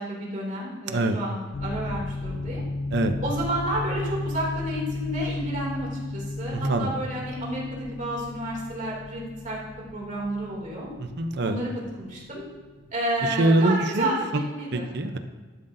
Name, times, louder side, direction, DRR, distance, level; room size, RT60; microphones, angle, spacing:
voice 1, 0.0-2.6 3.2-9.6 9.9-10.9 11.4-11.7 11.9-12.5 12.9-14.9, right 1 dB, 40° right, -4 dB, 2.7 m, -31 dB
sound 1, 1.5-12.8, left 2 dB, 50° left, 0.3 m, -34 dB
voice 2, 6.5-6.9 11.0-11.6 13.2-14.4 14.7-15.2, right 1 dB, 60° right, 7 dB, 0.6 m, -24 dB
12.0 x 7.5 x 2.7 m, 1.4 s
head